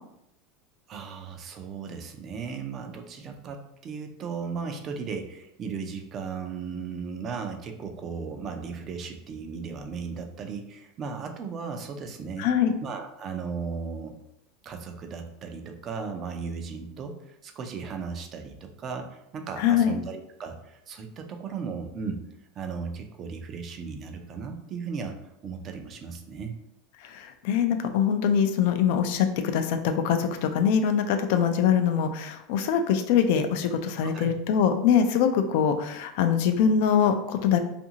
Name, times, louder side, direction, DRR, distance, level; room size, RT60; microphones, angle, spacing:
voice 1, 0.9-12.5 12.8-14.2 14.6-22.2 22.6-26.6 34.0-34.3, right 5 dB, 40° right, 5 dB, 0.5 m, -36 dB
voice 2, 12.4-12.7 19.6-19.9 27.0-37.6, left 7 dB, 70° left, 7 dB, 0.3 m, -23 dB
2.6 x 2.5 x 2.8 m, 0.81 s
supercardioid pair, 110°, 0 cm